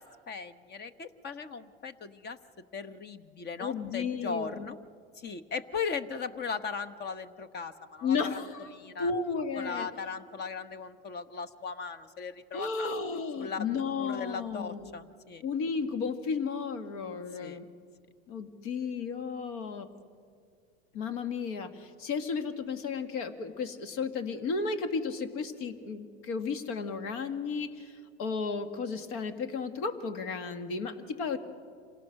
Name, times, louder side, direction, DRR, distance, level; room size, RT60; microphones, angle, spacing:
voice 1, 0.0-2.4 2.7-4.8 5.2-8.4 8.7-9.1 9.6-12.9 13.4-13.7 13.9-15.4 17.4-17.6, left 5 dB, 30° left, 11 dB, 1.1 m, -38 dB
voice 2, 3.6-4.7 8.0-9.9 12.5-14.9 15.4-17.7 18.3-19.9 20.9-31.4, left 5 dB, 60° left, 8 dB, 2.0 m, -33 dB
27.0 x 17.5 x 6.5 m, 2.1 s
hypercardioid pair, 110°, 32 cm